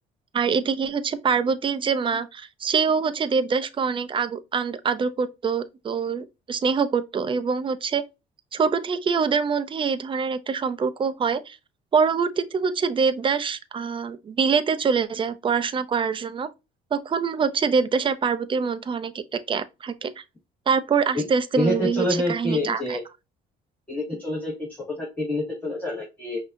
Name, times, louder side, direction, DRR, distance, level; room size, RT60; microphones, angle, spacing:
voice 1, 0.3-8.0 8.5-11.6 11.9-16.5 16.9-20.2 20.7-23.0, right 5 dB, 30° right, 0.5 m, -24 dB
voice 2, 21.6-23.0 23.9-26.4, left 1 dB, 10° left, 2.0 m, -27 dB
5.4 x 2.8 x 2.6 m
cardioid pair, 110°, 17 cm